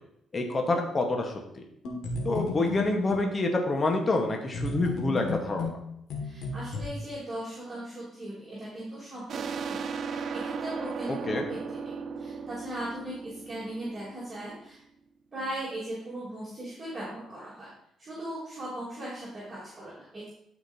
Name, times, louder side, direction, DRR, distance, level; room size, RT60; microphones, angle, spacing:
voice 1, 0.3-1.6 2.2-5.7 11.3-11.4, left 2 dB, 35° left, 3 dB, 1.1 m, -27 dB
sound 1, 1.8-3.3 4.5-6.8, left 2 dB, 80° left, 1.8 m, -33 dB
voice 2, 6.2-9.8 10.1-14.8 15.3-17.7 18.0-20.3, right 1 dB, 25° right, -8 dB, 3.1 m, -38 dB
sound 2, 9.3-14.6, right 5 dB, 60° right, 0.5 m, -36 dB
12.5 x 5.1 x 2.7 m, 0.76 s
cardioid pair, 90°, 0 cm